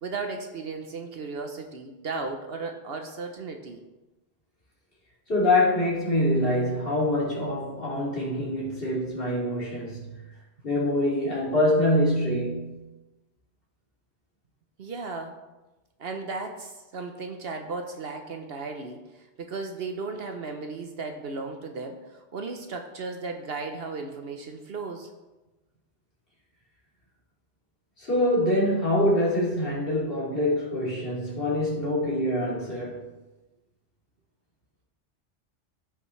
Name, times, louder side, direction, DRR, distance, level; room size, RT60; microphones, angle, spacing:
voice 1, 0.0-3.8 14.8-15.4 16.0-25.1, right 4 dB, 60° right, 5 dB, 0.9 m, -35 dB
voice 2, 5.3-10.1 10.6-12.8 28.0-33.1, left 1 dB, 50° left, -6 dB, 2.9 m, -25 dB
14.5 x 5.8 x 3.2 m, 1.1 s
omnidirectional pair, 1.2 m